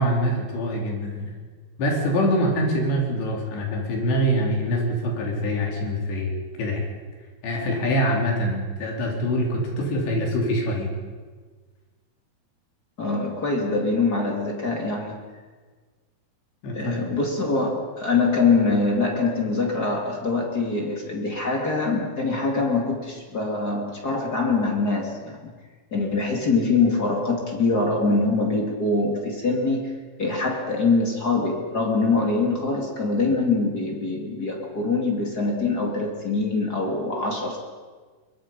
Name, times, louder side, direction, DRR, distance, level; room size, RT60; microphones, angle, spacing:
voice 1, 0.0-1.4 1.8-6.9 7.4-10.9 16.6-16.9, equal, 80° left, 0 dB, 5.8 m, -24 dB
voice 2, 13.0-15.2 16.7-25.5 25.9-29.9 30.2-37.6, left 3 dB, 30° left, 1 dB, 2.3 m, -24 dB
22.5 x 22.0 x 5.5 m, 1.4 s
omnidirectional pair, 4.9 m